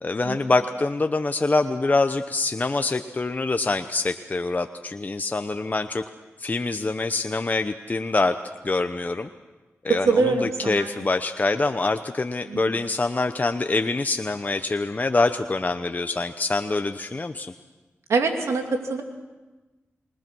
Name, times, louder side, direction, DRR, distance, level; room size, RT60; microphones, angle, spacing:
voice 1, 0.0-6.0 6.4-8.4 8.6-9.3 9.8-17.5, left 3 dB, 35° left, 8 dB, 0.9 m, -25 dB
voice 2, 9.9-11.1 12.5-12.6 18.1-19.0, right 4 dB, 85° right, 4 dB, 2.8 m, -23 dB
27.5 x 21.0 x 6.2 m, 1.2 s
cardioid pair, 55°, 5 cm